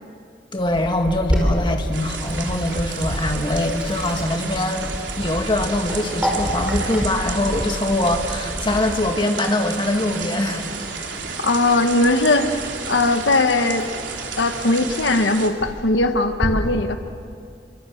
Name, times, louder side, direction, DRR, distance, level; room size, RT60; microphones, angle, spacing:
voice 1, 0.5-4.9 5.2-10.7, left 1 dB, 25° left, 3 dB, 2.2 m, -23 dB
sound 1, 0.6-9.1, equal, 10° left, 1.0 m, -32 dB
Sink (filling or washing), 1.1-16.5, equal, 5° right, 5.5 m, -32 dB
sound 2, 1.9-15.5, right 5 dB, 85° right, 3.3 m, -32 dB
voice 2, 11.4-12.6 12.9-13.8 14.4-17.0, left 2 dB, 80° left, 7 dB, 1.3 m, -19 dB
29.5 x 24.5 x 7.9 m, 2.3 s
head